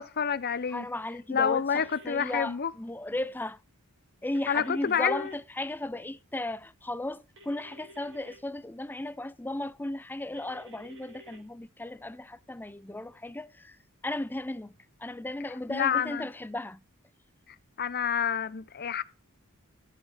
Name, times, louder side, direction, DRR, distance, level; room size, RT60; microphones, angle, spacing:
voice 1, 0.0-0.9 1.3-2.7 4.5-5.3 15.7-16.3 17.8-19.0, left 7 dB, 45° left, 0.7 m, -28 dB
voice 2, 0.7-3.6 4.2-13.8 14.0-14.7 15.0-16.8, left 1 dB, 10° left, 0.5 m, -35 dB
sound 1, 1.7-2.4 4.3-5.4 7.4-8.4 10.4-11.4, right 1 dB, 60° right, 3.9 m, -52 dB
14.0 x 8.4 x 4.9 m
head